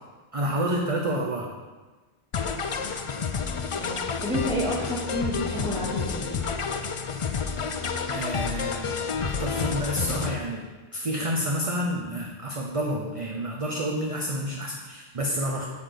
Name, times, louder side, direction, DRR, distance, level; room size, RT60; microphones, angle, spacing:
voice 1, 0.3-1.5 7.3-7.4 8.1-10.6 10.9-15.6, equal, 35° right, -1 dB, 0.8 m, -29 dB
sound 1, 2.3-10.3, left 6 dB, 50° left, 0.4 m, -29 dB
voice 2, 3.8-6.4, right 1 dB, 5° left, -6 dB, 2.0 m, -30 dB
7.7 x 4.3 x 6.7 m, 1.3 s
omnidirectional pair, 1.1 m